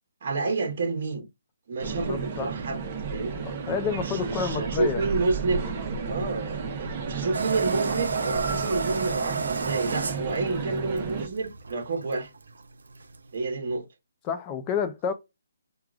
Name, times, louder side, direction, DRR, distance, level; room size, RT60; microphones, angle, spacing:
voice 1, 0.2-1.3 1.7-2.8 3.1-3.4 4.0-5.6 6.1-12.3 13.3-13.9, right 3 dB, 45° right, 1.0 m, -29 dB
sound 1, 1.8-11.3, right 5 dB, 30° right, 0.8 m, -32 dB
voice 2, 2.1-2.5 3.4-5.0 14.2-15.1, left 7 dB, 20° left, 0.6 m, -29 dB
sound 2, 7.3-13.4, right 5 dB, 85° right, 0.6 m, -32 dB
4.6 x 2.3 x 2.4 m
hypercardioid pair, 165°, 0 cm